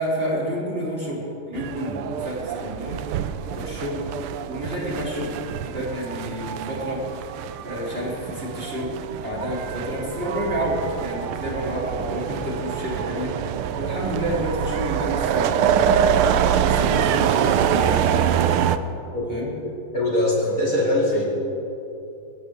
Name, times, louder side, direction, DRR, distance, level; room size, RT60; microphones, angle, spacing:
voice 1, 0.0-3.0 3.5-4.1 4.4-7.0 7.6-13.3 13.8-16.2 16.6-18.2 19.3-19.5, equal, 25° right, -6 dB, 3.7 m, -29 dB
sound 1, 1.5-18.8, right 9 dB, 80° right, 1.5 m, -25 dB
voice 2, 19.9-21.2, left 1 dB, 40° left, -4 dB, 2.7 m, -21 dB
22.5 x 16.5 x 3.6 m, 2.8 s
omnidirectional pair, 2.4 m